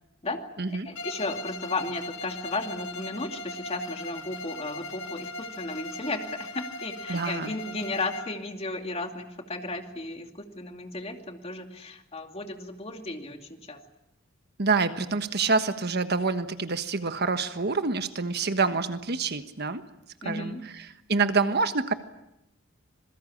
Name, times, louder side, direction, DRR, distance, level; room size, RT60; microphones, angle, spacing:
voice 1, 0.7-13.8 20.2-20.6, left 2 dB, 30° left, 4 dB, 2.6 m, -34 dB
Bowed string instrument, 1.0-8.4, left 2 dB, 70° left, 2.6 m, -39 dB
voice 2, 7.1-7.5 14.6-19.8 20.2-21.9, right 4 dB, 55° right, 9 dB, 1.4 m, -27 dB
26.5 x 22.0 x 8.7 m, 0.86 s
head